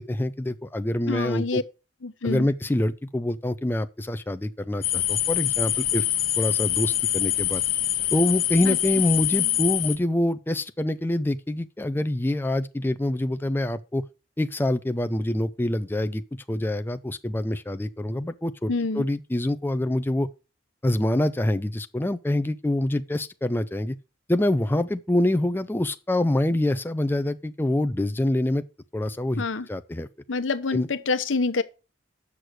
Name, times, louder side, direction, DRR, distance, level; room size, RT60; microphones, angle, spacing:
voice 1, 0.0-1.6 2.2-6.1 6.4-7.6 8.1-14.0 14.4-16.2 16.5-20.3 20.8-24.0 24.3-28.6 28.9-29.4 29.7-30.1 30.7-30.9, left 1 dB, 10° left, 0.4 m, -25 dB
voice 2, 1.1-1.6 2.0-2.5 8.6-8.8 18.7-19.0 29.4-29.7 30.3-31.6, left 3 dB, 85° left, 0.9 m, -26 dB
sound 1, 4.8-10.0, left 12 dB, 45° left, 1.1 m, -25 dB
8.3 x 6.3 x 6.2 m
head